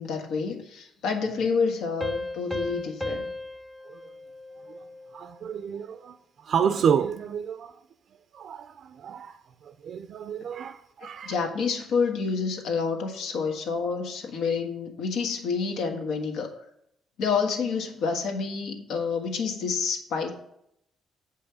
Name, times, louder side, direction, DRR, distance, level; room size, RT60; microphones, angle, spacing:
voice 1, 0.0-3.3 11.2-16.5 17.2-20.3, left 5 dB, 90° left, 1.6 m, -28 dB
Piano, 2.0-5.3, left 2 dB, 5° left, 0.5 m, -35 dB
voice 2, 5.1-6.2 6.4-7.7 8.3-9.4 9.6-11.3, right 7 dB, 55° right, 0.5 m, -29 dB
8.3 x 5.5 x 6.8 m
cardioid pair, 135°, 0 cm